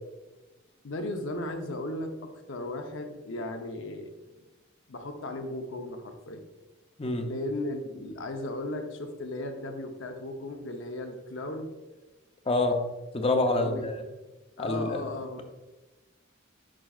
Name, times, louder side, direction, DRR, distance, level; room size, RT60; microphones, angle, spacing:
voice 1, 0.8-4.1 4.9-6.4 7.2-11.7 13.5-13.9 14.6-15.4, left 1 dB, 65° left, 5 dB, 0.8 m, -36 dB
voice 2, 7.0-7.3 12.5-12.8 13.1-14.0 14.6-15.0, left 2 dB, 30° left, 5 dB, 0.6 m, -26 dB
7.5 x 5.5 x 2.4 m, 1.1 s
head